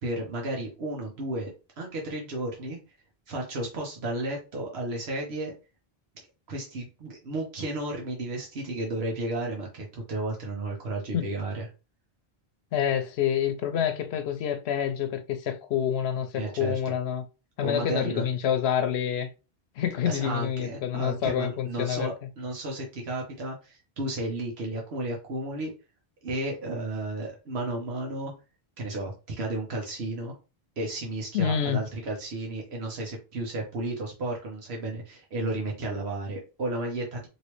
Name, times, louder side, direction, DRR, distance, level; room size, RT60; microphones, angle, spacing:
voice 1, 0.0-2.8 3.3-5.5 6.5-11.7 16.4-16.9 17.6-18.2 20.0-25.7 26.2-28.3 28.8-30.3 30.8-37.3, right 2 dB, 85° right, 1.2 m, -33 dB
voice 2, 12.7-17.2 17.6-19.3 19.8-22.1 31.3-31.8, left 9 dB, 90° left, 0.8 m, -27 dB
3.1 x 3.0 x 3.0 m
omnidirectional pair, 1.0 m